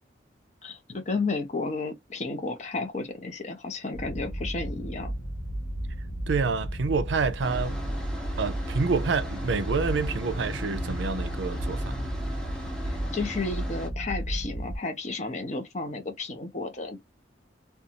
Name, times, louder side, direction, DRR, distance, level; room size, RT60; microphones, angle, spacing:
voice 1, 0.6-5.1 12.9-17.0, left 3 dB, 40° left, 0.7 m, -32 dB
sound 1, 3.9-14.8, equal, 70° left, 0.8 m, -33 dB
voice 2, 6.3-7.8 8.4-12.0, right 4 dB, 75° right, 0.5 m, -28 dB
sound 2, 7.4-13.9, equal, 5° left, 0.6 m, -40 dB
2.5 x 2.2 x 2.8 m
head